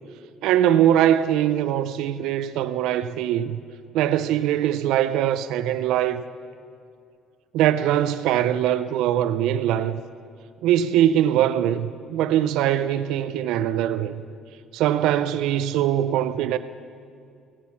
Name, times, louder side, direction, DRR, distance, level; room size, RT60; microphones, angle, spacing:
voice 1, 0.4-3.6 3.9-6.2 7.5-10.0 10.6-14.2 14.7-16.6, right 11 dB, 65° right, 0.4 m, -22 dB
15.5 x 7.4 x 7.1 m
cardioid pair, 175°, 0 cm